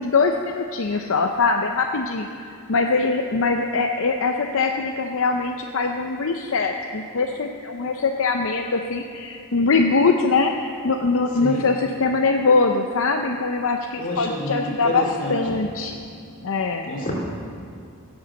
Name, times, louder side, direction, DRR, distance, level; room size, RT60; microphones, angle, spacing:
voice 1, 0.0-15.0 15.3-15.9 16.4-16.9, left 4 dB, 60° left, 3 dB, 0.6 m, -22 dB
voice 2, 11.3-11.7 14.0-15.5 16.8-17.1, equal, 35° left, -2 dB, 2.4 m, -28 dB
16.5 x 7.8 x 7.0 m, 2.4 s
head